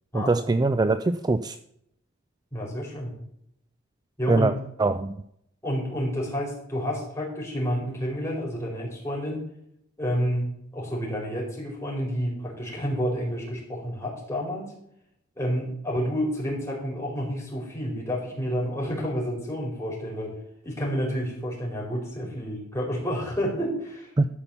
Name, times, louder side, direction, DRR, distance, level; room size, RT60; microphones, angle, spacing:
voice 1, 0.1-1.6 4.3-4.5 4.8-5.2 24.2-24.3, right 3 dB, 20° right, 11 dB, 0.4 m, -22 dB
voice 2, 2.5-3.1 4.2-4.5 5.6-9.4 10.0-14.7 15.4-20.4 20.6-24.1, equal, 15° left, -4 dB, 4.5 m, -29 dB
13.5 x 5.6 x 6.9 m, 0.74 s
head